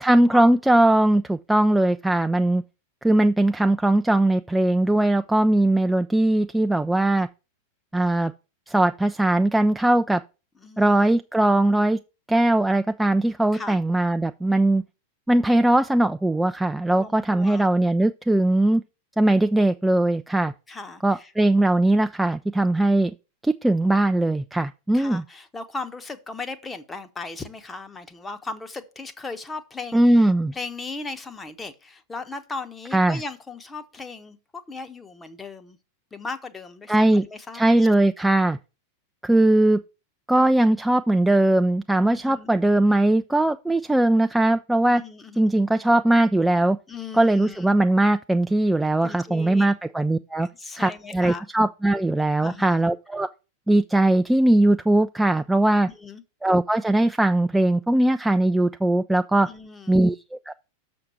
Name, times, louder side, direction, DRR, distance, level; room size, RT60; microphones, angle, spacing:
voice 1, 0.0-2.6 3.0-7.3 7.9-8.3 8.7-10.2 10.8-12.0 12.3-14.8 15.3-18.8 19.2-20.5 21.0-23.1 23.4-25.2 29.9-30.5 32.9-33.2 36.9-37.3 37.5-38.6 39.2-39.8 40.3-45.0 45.4-46.8 47.1-50.5 50.8-53.3 53.7-55.9 56.4-59.5 59.9-60.5, right 1 dB, 5° right, 0.3 m, -20 dB
voice 2, 10.6-10.9 13.5-13.8 17.0-17.6 20.7-21.3 24.9-34.4 34.7-35.8 36.1-37.9 42.1-42.5 44.9-45.5 46.9-47.7 49.0-49.7 50.4-51.5 52.4-52.8 55.9-56.2 59.4-60.0, left 3 dB, 15° left, 0.9 m, -37 dB
6.7 x 6.2 x 4.3 m
figure-of-eight pair, 90°, 0 cm